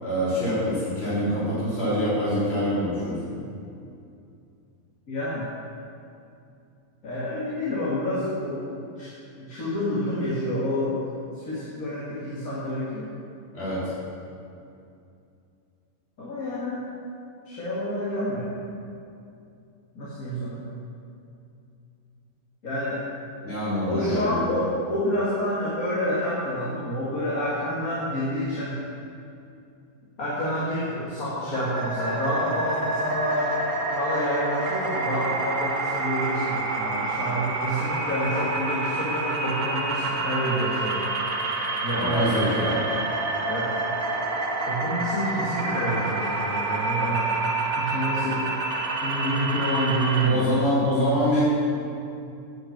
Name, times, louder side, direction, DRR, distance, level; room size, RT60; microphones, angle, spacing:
voice 1, 0.0-3.4 13.5-13.8 23.4-24.5 41.9-42.9 50.2-51.4, equal, 55° left, -11 dB, 3.8 m, -25 dB
voice 2, 5.1-5.5 7.0-9.1 9.4-10.9 11.4-13.1 16.2-16.8 17.5-18.5 19.9-20.7 22.6-23.0 23.9-28.9 30.2-33.5 33.9-41.0 41.8-42.6 43.4-43.7 44.7-47.4 47.8-48.4 49.0-50.6, equal, 70° left, -9 dB, 2.6 m, -28 dB
sound 1, 31.5-50.3, right 3 dB, 75° right, 1.9 m, -28 dB
8.8 x 8.3 x 7.4 m, 2.5 s
omnidirectional pair, 1.5 m